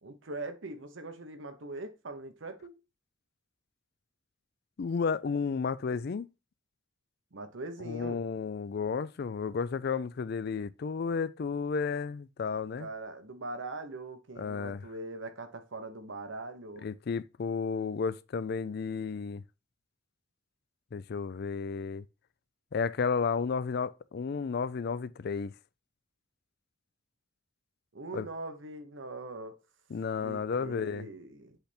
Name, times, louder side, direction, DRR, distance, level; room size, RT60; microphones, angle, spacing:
voice 1, 0.0-2.8 7.3-8.2 12.8-16.9 27.9-29.6 30.2-31.6, right 2 dB, 75° right, 1.0 m, -41 dB
voice 2, 4.8-6.3 7.9-12.9 14.4-14.8 16.8-19.4 20.9-22.1 22.7-25.5 28.1-28.3 29.9-31.1, left 5 dB, 55° left, 0.4 m, -32 dB
8.0 x 3.5 x 4.2 m
head